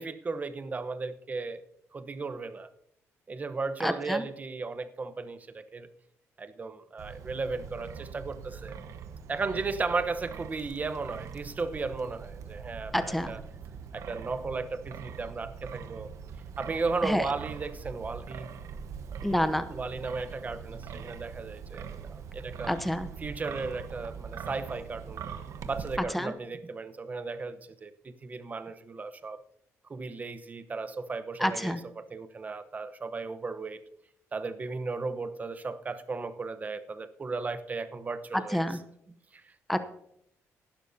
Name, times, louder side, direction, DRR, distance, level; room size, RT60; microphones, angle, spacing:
voice 1, 0.0-1.6 1.9-2.7 3.3-5.9 6.4-8.8 9.3-13.4 13.9-16.1 16.6-18.5 19.7-22.7 23.2-25.2 25.6-29.4 29.9-33.8 34.3-38.6 39.3-39.4, right 4 dB, 30° right, 0.9 m, -35 dB
voice 2, 3.8-4.2 12.9-13.3 17.0-17.3 19.2-19.6 22.7-23.1 26.1-26.3 31.4-31.8 38.5-38.8 39.7-39.8, equal, ahead, 0.7 m, -28 dB
Wind, 7.0-26.0, right 6 dB, 70° right, 1.1 m, -42 dB
17.0 x 11.5 x 2.8 m
cardioid pair, 110°, 6 cm